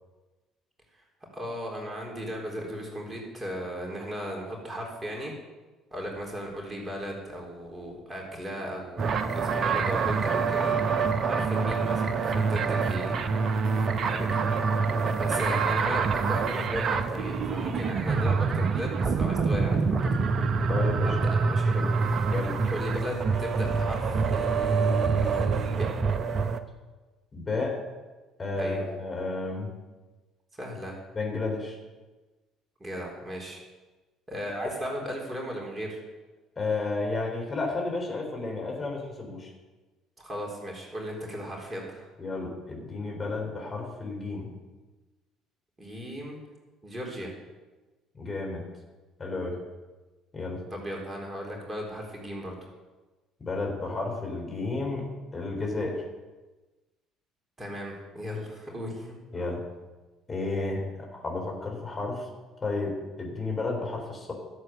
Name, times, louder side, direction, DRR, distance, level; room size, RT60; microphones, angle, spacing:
voice 1, 1.3-5.3 5.9-10.7 11.2-13.2 13.8-14.4 15.2-20.0 21.0-21.8 22.7-25.9 28.6-28.8 30.5-31.0 32.8-33.6 34.3-36.0 40.2-42.1 45.8-46.4 46.8-47.3 50.7-52.6 57.6-59.2, equal, 20° right, -1 dB, 4.0 m, -36 dB
sound 1, 9.0-26.6, right 5 dB, 45° right, 0.9 m, -26 dB
voice 2, 20.7-21.1 21.7-21.9 22.3-22.6 27.3-27.8 28.4-29.7 31.1-31.8 36.6-39.5 42.2-44.5 48.1-48.7 49.2-49.6 50.3-50.6 53.4-55.1 55.3-56.0 59.3-59.6 60.3-62.3 62.6-64.3, left 3 dB, 30° left, 0 dB, 3.9 m, -32 dB
13.5 x 8.0 x 6.7 m, 1.2 s
figure-of-eight pair, 55°, 0 cm